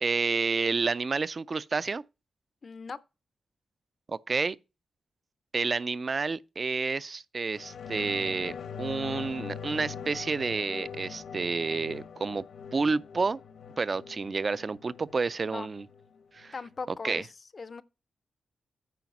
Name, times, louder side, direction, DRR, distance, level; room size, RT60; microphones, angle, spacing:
voice 1, 0.0-2.0 4.1-4.6 5.5-12.4 12.7-13.4 13.8-15.9 16.3-16.5 17.0-17.2, right 4 dB, 35° right, 0.3 m, -30 dB
voice 2, 2.6-3.0 15.4-15.7 16.5-17.3 17.5-17.8, left 4 dB, 35° left, 0.5 m, -39 dB
sound 1, 7.5-16.5 16.8-16.9, left 7 dB, 75° left, 0.9 m, -42 dB
9.3 x 4.8 x 5.9 m
wide cardioid pair, 140°, 0 cm